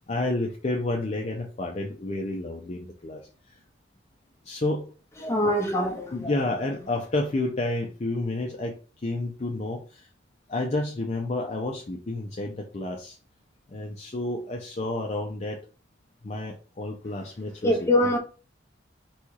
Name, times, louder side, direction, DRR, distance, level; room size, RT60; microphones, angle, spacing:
voice 1, 0.1-3.5 4.4-4.9 5.4-5.5 6.1-8.8 9.0-10.1 10.5-13.2 13.7-15.6 16.2-18.2, left 2 dB, 35° left, 0.5 m, -30 dB
voice 2, 5.2-6.3 17.6-18.2, left 1 dB, 15° left, 0.9 m, -23 dB
4.2 x 2.3 x 4.6 m
head